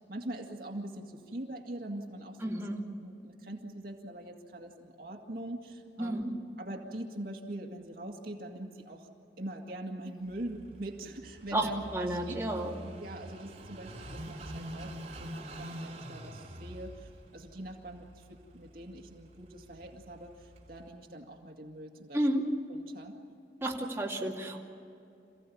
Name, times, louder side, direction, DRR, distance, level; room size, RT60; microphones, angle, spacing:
voice 1, 0.1-2.7 3.0-6.2 6.6-9.1 9.4-12.4 13.0-22.3 22.7-23.1, right 1 dB, 55° right, 2 dB, 2.1 m, -43 dB
voice 2, 2.4-2.8 6.0-6.3 11.5-11.7 11.9-12.7 22.1-22.4 23.6-24.6, right 1 dB, 15° right, -3 dB, 2.5 m, -31 dB
Car passing by / Idling, 10.3-20.9, right 1 dB, 40° right, 3.0 m, -46 dB
27.5 x 16.0 x 8.6 m, 2.6 s
head